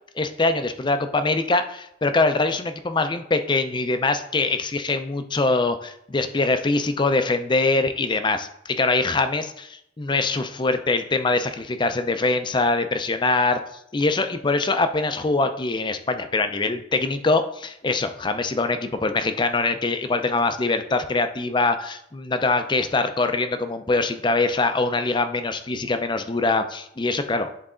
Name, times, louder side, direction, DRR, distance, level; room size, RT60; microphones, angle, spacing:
voice 1, 0.2-13.6 13.9-27.6, left 3 dB, 25° left, 8 dB, 0.5 m, -23 dB
9.7 x 4.0 x 3.7 m, 0.74 s
head